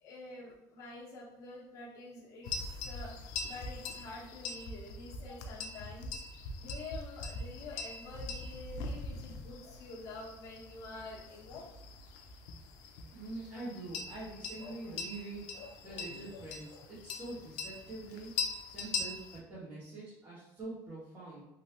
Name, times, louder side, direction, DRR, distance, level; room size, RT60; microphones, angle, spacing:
voice 1, 0.0-3.1 3.5-6.1 6.6-11.7, left 2 dB, 50° left, -5 dB, 0.9 m, -47 dB
sound 1, 2.4-19.4, left 4 dB, 80° left, 0.4 m, -42 dB
voice 2, 13.1-18.3 18.6-21.4, right 2 dB, 20° right, -10 dB, 0.8 m, -45 dB
3.2 x 2.6 x 2.7 m, 0.87 s
cardioid pair, 180°, 7 cm